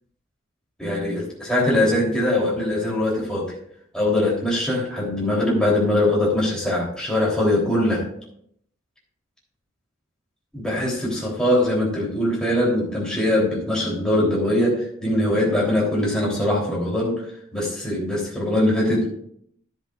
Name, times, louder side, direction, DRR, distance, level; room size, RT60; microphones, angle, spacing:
voice 1, 0.8-3.5 3.9-8.1 10.5-17.3 17.5-19.1, left 1 dB, 5° left, -5 dB, 3.4 m, -22 dB
11.0 x 10.5 x 2.5 m, 0.67 s
head